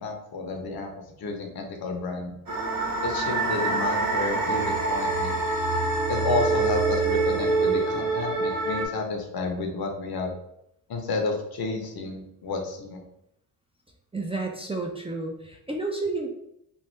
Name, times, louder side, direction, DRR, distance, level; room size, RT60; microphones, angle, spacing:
voice 1, 0.0-2.4 3.0-5.4 6.1-10.3 10.9-13.0, left 3 dB, 60° left, 3 dB, 0.9 m, -31 dB
sound 1, 2.5-8.9, right 3 dB, 55° right, 1.2 m, -25 dB
voice 2, 14.1-16.3, right 3 dB, 15° right, 0 dB, 0.4 m, -31 dB
3.2 x 2.3 x 3.1 m, 0.77 s
cardioid pair, 75°, 42 cm